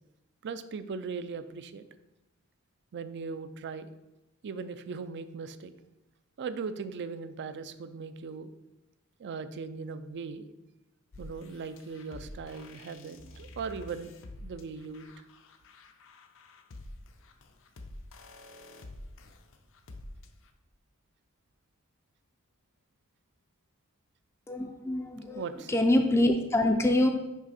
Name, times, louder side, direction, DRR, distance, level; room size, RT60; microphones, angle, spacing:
voice 1, 0.4-1.8 2.9-3.9 4.4-5.7 6.4-8.5 9.2-10.5 11.2-15.1 25.3-25.7, right 5 dB, 55° right, 12 dB, 0.4 m, -39 dB
sound 1, 11.1-20.5, left 1 dB, 60° left, 0.6 m, -48 dB
voice 2, 24.5-25.4 25.7-27.1, left 1 dB, 10° left, 4 dB, 0.4 m, -25 dB
6.1 x 5.0 x 4.1 m, 0.98 s
head